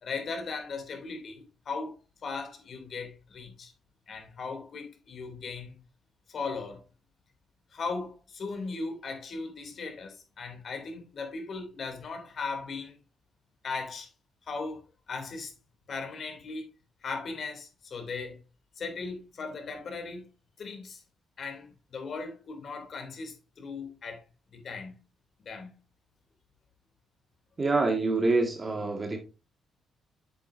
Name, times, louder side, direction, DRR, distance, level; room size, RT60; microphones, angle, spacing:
voice 1, 0.0-3.7 4.1-5.8 6.3-6.8 7.7-12.9 13.6-14.1 14.4-15.5 15.9-16.7 17.0-18.4 18.8-20.2 20.6-21.0 21.4-24.2 24.5-24.9 25.4-25.7, left 4 dB, 50° left, 3.1 m, -38 dB
voice 2, 27.6-29.2, right 3 dB, 30° right, 2.0 m, -26 dB
8.6 x 7.6 x 2.7 m
cardioid pair, 90°, 0 cm